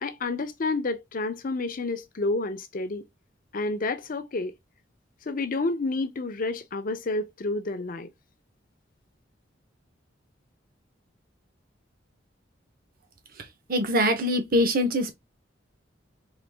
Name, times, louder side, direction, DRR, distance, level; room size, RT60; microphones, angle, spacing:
voice 1, 0.0-3.0 3.5-4.5 5.3-8.1, left 3 dB, 45° left, 0.6 m, -29 dB
voice 2, 13.7-15.1, equal, 50° right, 1.0 m, -23 dB
3.9 x 3.0 x 3.3 m
head